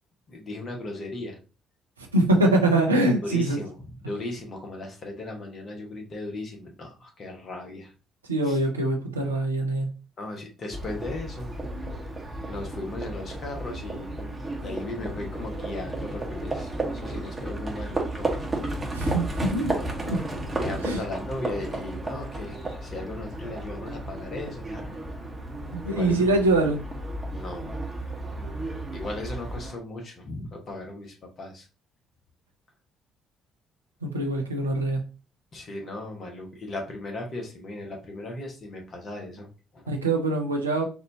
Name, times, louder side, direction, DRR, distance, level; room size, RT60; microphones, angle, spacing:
voice 1, 0.3-1.4 3.2-3.7 4.1-7.9 8.5-8.6 10.2-11.5 12.5-14.2 14.6-18.3 20.6-24.9 25.9-26.2 27.3-27.7 28.9-31.6 35.5-39.5 39.7-39.8, left 2 dB, 40° left, 1 dB, 1.2 m, -37 dB
voice 2, 2.1-3.6 8.3-9.9 18.9-19.7 20.1-20.2 20.8-21.0 25.7-26.8 34.0-35.1 39.9-40.8, right 2 dB, 80° right, 2 dB, 0.5 m, -23 dB
Livestock farm animals working animals, 10.7-29.7, right 1 dB, 20° right, 1.2 m, -33 dB
4.2 x 2.6 x 2.8 m, 0.34 s
figure-of-eight pair, 45°, 0 cm